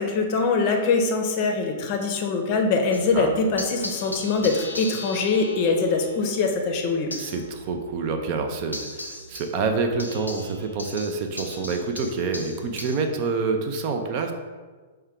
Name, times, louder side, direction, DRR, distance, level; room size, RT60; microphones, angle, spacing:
voice 1, 0.0-7.1, left 4 dB, 40° left, 3 dB, 0.6 m, -23 dB
sound 1, 2.9-13.1, left 1 dB, 85° left, 0.5 m, -38 dB
voice 2, 7.2-14.3, right 4 dB, 40° right, 5 dB, 0.4 m, -27 dB
5.3 x 2.2 x 3.5 m, 1.4 s
figure-of-eight pair, 105°, 0 cm